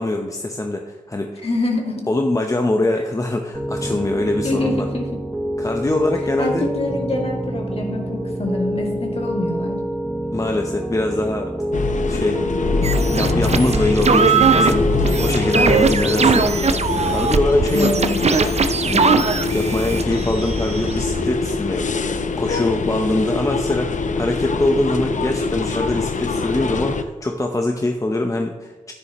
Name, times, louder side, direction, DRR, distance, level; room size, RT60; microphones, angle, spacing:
voice 1, 0.0-1.4 2.1-4.9 5.6-6.7 10.3-11.5 12.1-12.4 13.1-16.7 17.1-18.4 18.8-19.3 19.5-21.9 22.4-28.9, left 2 dB, 25° left, 3 dB, 0.8 m, -23 dB
voice 2, 1.4-2.1 4.4-5.2 6.4-9.8 15.7-16.1 17.7-18.2, left 2 dB, 45° left, 0 dB, 2.2 m, -25 dB
Piano, 3.5-16.5, right 1 dB, 10° right, 0.9 m, -26 dB
sound 1, 11.7-27.0, left 4 dB, 60° left, 0.7 m, -24 dB
sound 2, 12.8-21.3, right 5 dB, 50° right, 0.6 m, -20 dB
10.0 x 9.6 x 3.0 m, 1.3 s
cardioid pair, 55°, 14 cm